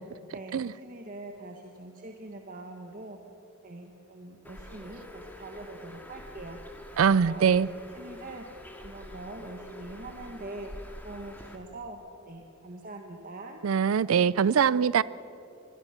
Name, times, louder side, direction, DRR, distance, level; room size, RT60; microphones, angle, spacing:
voice 1, 0.3-3.2 3.6-6.6 7.2-8.4 8.8-13.6, right 2 dB, 45° right, 2 dB, 1.4 m, -43 dB
Bird, 4.4-11.6, left 1 dB, 10° left, 2.1 m, -46 dB
voice 2, 7.0-7.7 13.6-15.0, right 7 dB, 85° right, 20 dB, 0.4 m, -22 dB
25.0 x 21.5 x 5.9 m, 2.9 s
head